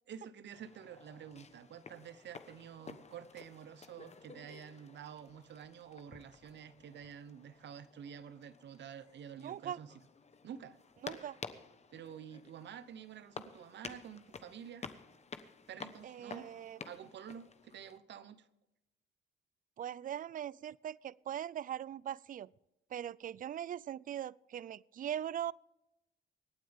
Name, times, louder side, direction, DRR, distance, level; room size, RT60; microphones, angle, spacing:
voice 1, 0.1-9.9 10.4-10.8 11.9-14.9 15.7-16.5 16.8-18.5, right 8 dB, 65° right, 15 dB, 1.0 m, -49 dB
sound 1, 0.5-18.0, left 5 dB, 35° left, 1.1 m, -52 dB
voice 2, 9.4-9.8 11.0-11.4 16.0-16.8 19.8-22.5 22.9-25.5, right 10 dB, 45° right, 24 dB, 0.4 m, -41 dB
25.5 x 9.3 x 3.6 m, 0.94 s
cardioid pair, 90°, 20 cm